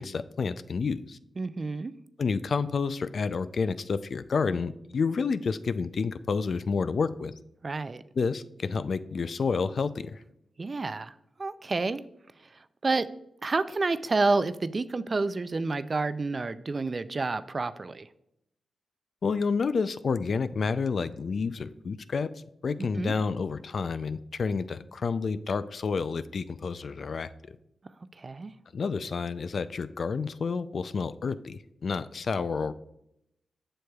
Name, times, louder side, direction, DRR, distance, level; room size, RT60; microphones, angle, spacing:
voice 1, 0.0-1.2 2.2-7.3 8.2-10.2 19.2-22.3 22.6-27.6 28.7-32.7, left 5 dB, 65° left, 0.3 m, -29 dB
voice 2, 1.4-1.9 7.6-8.0 10.6-11.1 11.4-12.0 12.8-13.1 13.4-18.1 22.8-23.1 28.2-28.5, right 3 dB, 45° right, 0.4 m, -29 dB
7.6 x 6.4 x 2.3 m
cardioid pair, 60°, 0 cm